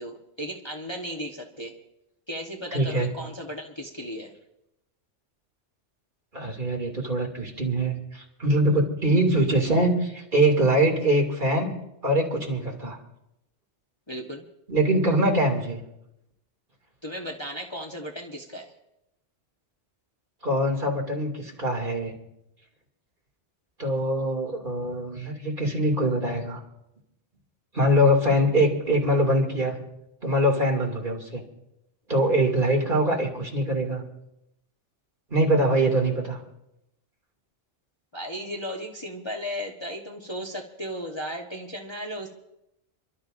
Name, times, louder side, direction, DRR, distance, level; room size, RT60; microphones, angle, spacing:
voice 1, 0.0-1.7 2.3-4.3 14.1-14.4 17.0-18.7 38.1-42.3, equal, 25° left, 0 dB, 1.1 m, -35 dB
voice 2, 2.7-3.1 6.3-11.7 12.0-13.0 14.7-15.8 20.4-22.1 23.8-26.6 27.7-29.8 30.2-31.4 32.1-34.0 35.3-36.4, right 1 dB, 45° right, 0 dB, 2.8 m, -23 dB
30.0 x 12.5 x 2.6 m, 0.86 s
omnidirectional pair, 1.2 m